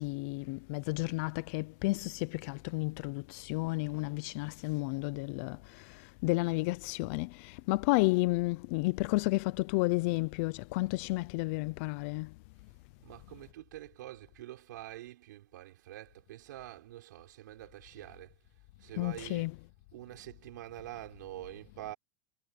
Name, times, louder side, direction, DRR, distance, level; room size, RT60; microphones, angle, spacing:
voice 1, 0.0-12.3 18.9-19.6, left 23 dB, 50° left, 0.6 m, -32 dB
voice 2, 13.0-18.3 18.8-19.5 19.9-22.0, right 15 dB, 85° right, 6.5 m, -46 dB
supercardioid pair, 160°, 10 cm